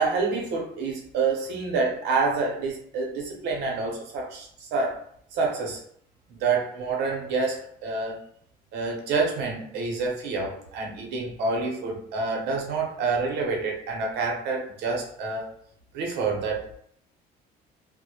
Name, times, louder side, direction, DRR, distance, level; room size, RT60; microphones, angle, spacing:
voice 1, 0.0-5.0 5.3-5.8 6.4-8.2 8.7-15.5 15.9-16.7, right 4 dB, 85° right, 0 dB, 0.7 m, -27 dB
2.1 x 2.1 x 2.8 m, 0.64 s
cardioid pair, 110°, 17 cm